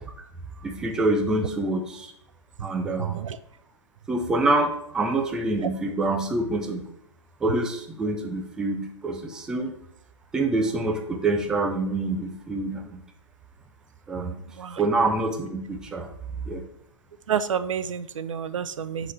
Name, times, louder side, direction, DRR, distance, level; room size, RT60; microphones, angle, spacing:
voice 1, 0.6-2.1 2.6-3.2 4.1-6.9 7.4-9.7 10.3-13.0 14.1-14.4 14.8-16.1 16.4-16.7, right 2 dB, 5° right, 3 dB, 0.4 m, -26 dB
voice 2, 17.3-19.1, right 8 dB, 85° right, 14 dB, 0.5 m, -29 dB
9.7 x 4.0 x 3.2 m, 0.76 s
hypercardioid pair, 150°, 16 cm